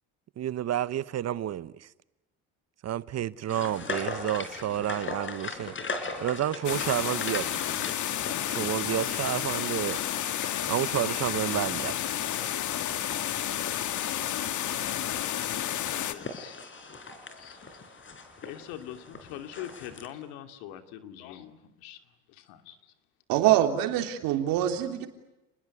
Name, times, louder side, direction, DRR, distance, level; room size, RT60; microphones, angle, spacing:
voice 1, 0.4-1.9 2.8-7.8 8.5-10.0 10.7-12.0, right 11 dB, 45° right, 0.9 m, -30 dB
sound 1, 3.5-20.1, left 3 dB, 35° left, 4.5 m, -40 dB
sound 2, 6.6-16.1, left 11 dB, 55° left, 1.9 m, -31 dB
voice 2, 15.7-16.6 17.3-18.0 18.4-22.0 22.3-22.9, left 11 dB, 80° left, 2.7 m, -44 dB
voice 3, 23.3-25.1, right 12 dB, 75° right, 3.4 m, -24 dB
30.0 x 20.5 x 9.6 m
supercardioid pair, 85°, 35 cm